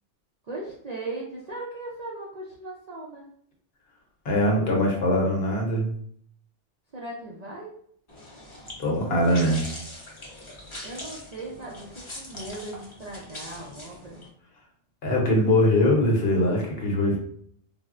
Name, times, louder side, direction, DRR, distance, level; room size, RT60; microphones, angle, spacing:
voice 1, 0.4-3.3 6.9-7.7 10.8-14.2, right 2 dB, 55° right, -4 dB, 0.4 m, -38 dB
voice 2, 4.2-5.9 8.8-9.6 15.0-17.2, left 1 dB, 60° left, 0 dB, 0.9 m, -22 dB
sound 1, 8.1-14.3, left 1 dB, 30° left, 0.7 m, -42 dB
4.0 x 2.0 x 2.4 m, 0.63 s
omnidirectional pair, 1.3 m